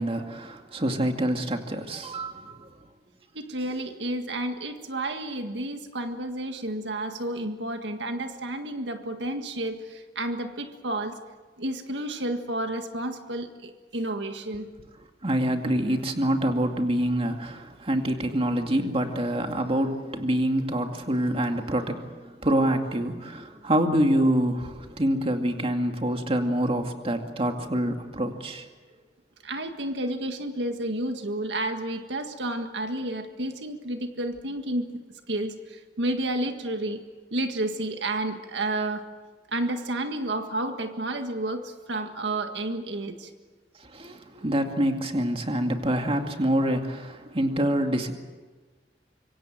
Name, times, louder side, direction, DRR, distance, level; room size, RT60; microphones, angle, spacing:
voice 1, 0.0-2.7 15.2-28.6 43.9-48.1, right 1 dB, 35° right, 4 dB, 2.3 m, -26 dB
voice 2, 3.4-11.2 11.6-14.9 29.4-34.9 35.3-37.0 37.3-39.1 39.5-43.3, right 1 dB, 80° right, 6 dB, 1.8 m, -31 dB
25.5 x 24.0 x 7.7 m, 1.3 s
head